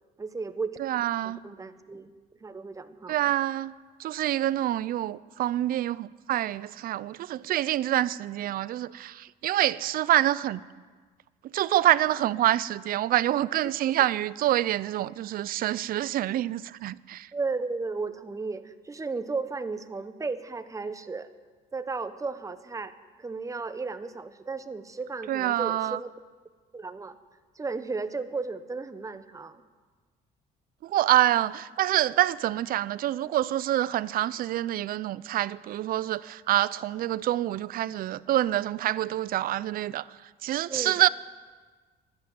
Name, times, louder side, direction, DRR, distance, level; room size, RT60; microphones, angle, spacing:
voice 1, 0.2-2.1 2.4-3.2 13.6-14.0 17.3-21.3 21.7-22.9 23.2-26.1 26.7-27.2 27.5-29.6 40.7-41.0, right 4 dB, 20° right, 0.9 m, -34 dB
voice 2, 0.8-1.4 3.1-3.7 4.0-10.6 11.5-17.3 25.3-26.0 30.8-40.1 40.4-41.1, right 13 dB, 60° right, 0.5 m, -26 dB
12.0 x 11.5 x 8.9 m
cardioid pair, 110°, 17 cm